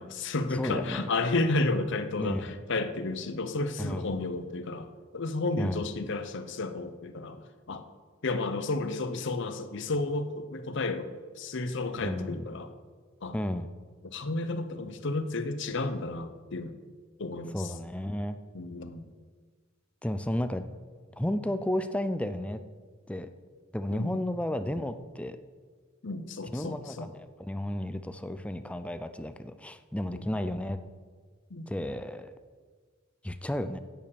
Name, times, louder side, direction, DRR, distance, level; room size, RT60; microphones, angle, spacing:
voice 1, 0.0-7.8 8.2-11.1 11.4-12.7 13.2-13.3 14.0-16.7 17.2-17.7 18.5-19.1 23.9-24.2 26.0-27.1 30.1-30.3 31.5-31.7, left 2 dB, 60° left, 9 dB, 0.8 m, -32 dB
voice 2, 0.5-1.1 2.2-2.4 3.8-4.1 5.6-5.9 12.0-12.4 13.3-13.7 17.5-18.4 20.0-20.6 21.2-22.6 23.1-23.3 23.7-25.4 26.5-30.8 31.7-32.3 33.2-33.8, left 1 dB, 5° left, 10 dB, 0.5 m, -32 dB
9.0 x 8.4 x 6.9 m, 1.5 s
head